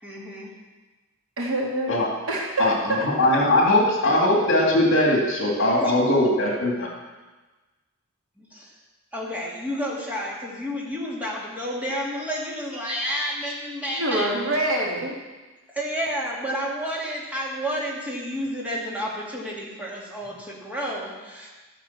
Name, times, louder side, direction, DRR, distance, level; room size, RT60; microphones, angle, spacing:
voice 1, 0.0-0.5 5.8-5.9 6.2-6.3 8.4-8.7 9.1-14.3 15.7-21.5, equal, 5° right, -4 dB, 2.5 m, -30 dB
voice 2, 1.4-2.0 2.3-3.1 13.9-15.1, right 1 dB, 70° right, -2 dB, 2.5 m, -25 dB
voice 3, 2.6-6.9, left 1 dB, 60° left, -1 dB, 2.4 m, -20 dB
14.0 x 6.6 x 7.2 m, 1.2 s
head